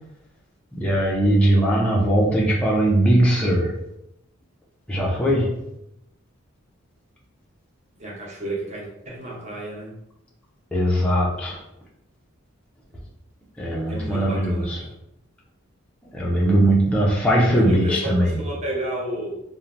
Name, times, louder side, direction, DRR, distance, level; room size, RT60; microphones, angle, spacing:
voice 1, 0.8-3.7 4.9-5.6 10.7-11.6 13.6-14.8 16.1-18.4, right 1 dB, 5° left, -5 dB, 0.4 m, -20 dB
voice 2, 8.0-9.9 13.9-14.9 17.6-19.4, right 1 dB, 30° right, -3 dB, 0.7 m, -31 dB
2.6 x 2.0 x 3.1 m, 0.83 s
head